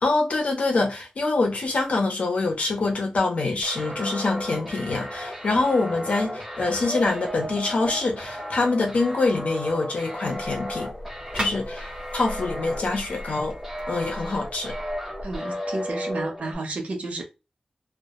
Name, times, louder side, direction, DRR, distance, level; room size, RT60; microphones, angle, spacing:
voice 1, 0.0-10.9 11.3-13.6 13.9-14.8, left 3 dB, 85° left, 0.7 m, -25 dB
sound 1, 3.6-16.5, equal, 10° right, 0.8 m, -34 dB
sound 2, 10.3-15.4, equal, 40° right, 0.9 m, -38 dB
voice 2, 15.2-17.2, right 2 dB, 85° right, 0.7 m, -31 dB
2.2 x 2.1 x 2.8 m
wide cardioid pair, 110°, 2 cm